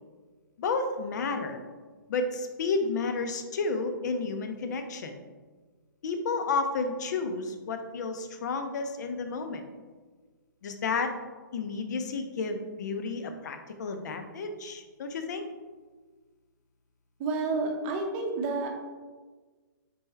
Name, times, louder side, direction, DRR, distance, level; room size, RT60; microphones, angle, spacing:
voice 1, 0.6-1.6 2.1-5.1 6.0-9.6 10.6-11.1 11.5-15.4, left 4 dB, 60° left, 6 dB, 0.6 m, -31 dB
voice 2, 17.2-18.7, right 3 dB, 30° right, 1 dB, 0.7 m, -29 dB
4.1 x 3.4 x 3.3 m, 1.4 s
hypercardioid pair, 140°, 11 cm